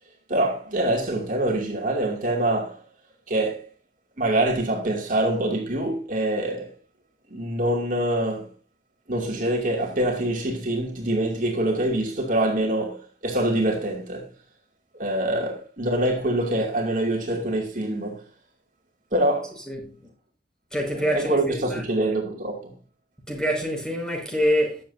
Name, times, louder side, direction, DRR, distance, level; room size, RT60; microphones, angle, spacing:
voice 1, 0.3-2.8 3.3-3.7 4.2-6.7 7.3-8.5 9.1-14.3 14.9-18.2 19.1-19.6 20.9-22.7, right 1 dB, 45° right, 2.7 m, -25 dB
voice 2, 19.7-20.0 20.7-21.8 23.3-24.8, equal, 5° left, 5.8 m, -26 dB
21.5 x 7.7 x 2.7 m
head